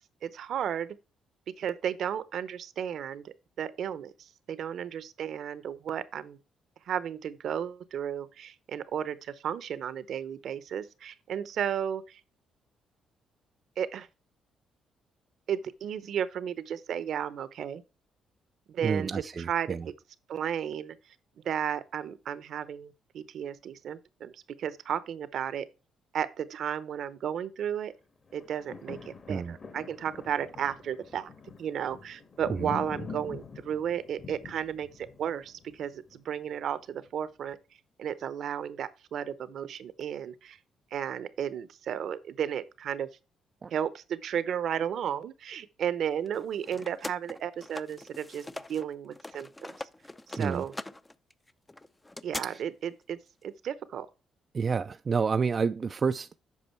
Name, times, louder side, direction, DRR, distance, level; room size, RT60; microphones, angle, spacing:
voice 1, 0.2-1.0 1.6-6.4 6.9-12.2 13.8-14.1 15.5-17.8 18.7-19.1 19.5-19.9 20.3-21.0 21.4-25.6 26.1-27.9 28.3-31.3 31.6-37.6 38.0-40.6 40.9-43.1 43.7-49.9 50.3-50.7 52.2-54.1, right 9 dB, 70° right, 0.8 m, -34 dB
voice 2, 18.8-19.9 29.3-29.5 32.5-32.7 43.6-43.7 50.4-50.6 52.4-52.6 54.5-56.4, right 5 dB, 40° right, 0.4 m, -29 dB
sound 1, 28.3-36.5 37.1-37.2, left 5 dB, 45° left, 1.6 m, -45 dB
sound 2, 46.3-48.9 49.1-52.4, left 2 dB, 15° left, 0.5 m, -42 dB
8.4 x 5.4 x 4.4 m
cardioid pair, 90°, 0 cm